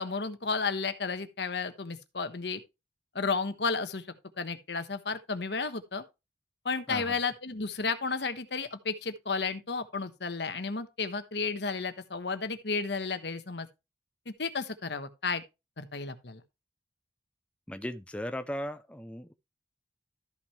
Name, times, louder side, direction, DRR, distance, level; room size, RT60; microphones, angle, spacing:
voice 1, 0.0-2.6 3.1-4.0 4.4-6.0 6.6-13.7 14.4-15.4 15.8-16.4, left 4 dB, 75° left, 1.2 m, -32 dB
voice 2, 17.7-19.3, equal, 5° left, 0.5 m, -37 dB
13.0 x 6.0 x 3.2 m
head